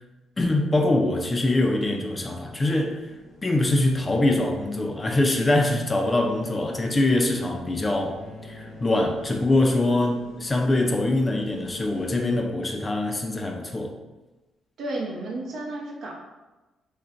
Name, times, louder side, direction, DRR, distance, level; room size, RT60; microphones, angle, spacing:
voice 1, 0.4-3.0 3.4-8.2 8.4-13.9, left 2 dB, 25° left, 2 dB, 0.4 m, -23 dB
sound 1, 1.5-12.2, left 1 dB, 85° left, 0.8 m, -47 dB
sound 2, 8.0-10.5, left 3 dB, 10° right, 1.0 m, -46 dB
voice 2, 14.8-16.1, right 2 dB, 65° right, -3 dB, 0.7 m, -32 dB
2.4 x 2.1 x 3.7 m, 1.1 s
cardioid pair, 90°, 0 cm